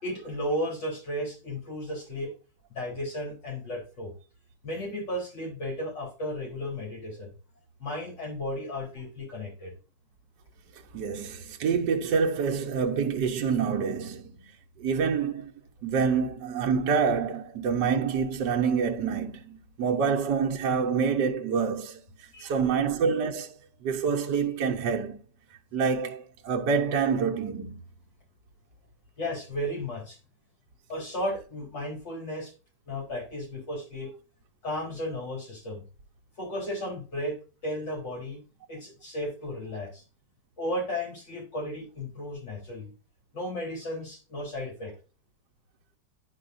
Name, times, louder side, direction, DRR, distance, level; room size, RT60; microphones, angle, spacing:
voice 1, 0.0-2.3 2.7-4.1 4.6-7.3 7.8-9.8 12.6-12.7 22.3-22.6 29.2-30.2 30.9-32.5 32.9-34.2 34.6-35.8 36.4-37.4 37.6-38.4 38.7-40.0 40.6-42.9 43.3-44.9, left 1 dB, 70° left, 4.4 m, -34 dB
voice 2, 10.9-14.5 14.8-15.5 15.8-22.0 22.4-25.2 25.7-27.8, right 6 dB, 70° right, 1.4 m, -27 dB
9.9 x 5.2 x 2.6 m
omnidirectional pair, 2.0 m